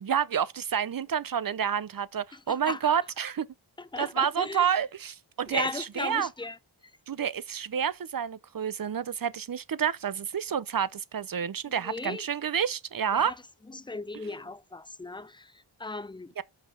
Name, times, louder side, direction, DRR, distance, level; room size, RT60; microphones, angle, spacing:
voice 1, 0.0-3.5 4.0-6.3 7.1-13.3 16.4-16.5, right 8 dB, 45° right, 0.6 m, -29 dB
voice 2, 2.3-2.9 3.8-4.7 5.5-6.6 11.7-12.3 13.1-13.4 13.7-16.3, left 3 dB, 10° left, 0.4 m, -37 dB
5.5 x 5.5 x 5.4 m
wide cardioid pair, 45°, 50 cm